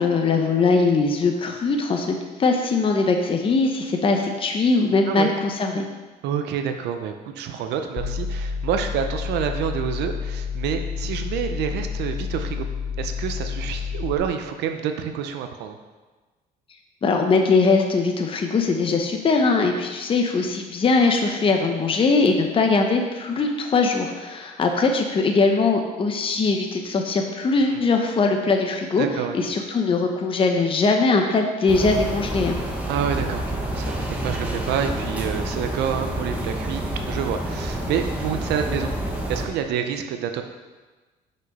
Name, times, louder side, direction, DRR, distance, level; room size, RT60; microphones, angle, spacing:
voice 1, 0.0-5.8 17.0-29.1 29.3-32.6, left 3 dB, 30° left, 3 dB, 0.8 m, -21 dB
voice 2, 6.2-12.7 13.0-15.8 27.7-27.8 29.0-29.4 32.9-38.9 39.3-40.4, right 8 dB, 85° right, 6 dB, 0.6 m, -28 dB
sound 1, 8.0-14.2, left 6 dB, 60° left, 1.4 m, -29 dB
sound 2, 31.7-39.5, right 1 dB, 10° right, 1.2 m, -28 dB
6.0 x 5.4 x 5.4 m, 1.3 s
cardioid pair, 110°, 17 cm